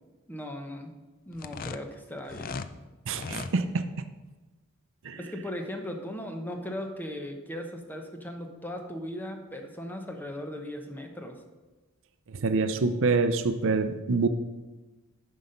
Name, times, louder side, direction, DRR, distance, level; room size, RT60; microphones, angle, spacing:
voice 1, 0.3-0.9 1.3-2.6 3.2-3.3 5.2-11.4, left 1 dB, 10° left, 4 dB, 0.9 m, -38 dB
sound 1, 1.3-2.7 3.1-3.5, left 5 dB, 40° left, 0.4 m, -37 dB
voice 2, 3.1-3.8 5.0-5.2 12.3-14.3, right 4 dB, 65° right, 9 dB, 0.6 m, -26 dB
9.7 x 5.6 x 5.2 m, 1.2 s
head